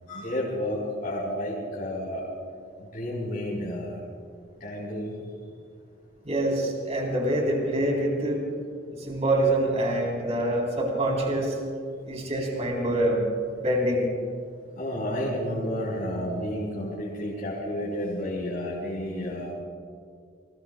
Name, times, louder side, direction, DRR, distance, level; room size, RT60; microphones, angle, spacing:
voice 1, 0.1-2.2 2.8-4.0 4.6-5.2 14.8-19.5, left 1 dB, 50° left, -6 dB, 4.2 m, -31 dB
voice 2, 6.3-8.4 8.9-11.6 12.1-13.2 13.6-14.1, right 1 dB, 35° right, -1 dB, 3.5 m, -25 dB
29.0 x 20.5 x 2.3 m, 2.3 s
head